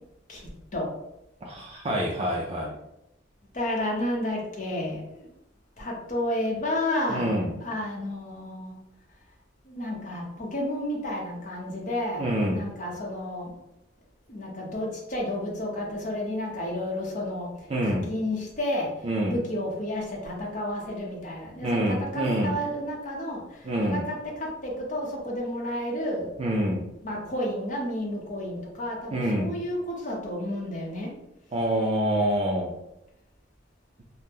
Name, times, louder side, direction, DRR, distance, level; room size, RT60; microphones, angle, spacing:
voice 1, 1.4-2.7 7.1-7.5 12.2-12.6 17.7-18.1 19.0-19.4 21.6-22.5 23.6-24.0 26.4-26.9 29.1-29.5 31.5-32.7, right 1 dB, 30° right, -2 dB, 0.4 m, -26 dB
voice 2, 3.5-5.3 5.8-8.8 9.6-13.5 14.3-26.3 27.0-31.1, left 1 dB, 40° left, -2 dB, 0.7 m, -31 dB
2.8 x 2.1 x 3.4 m, 0.84 s
head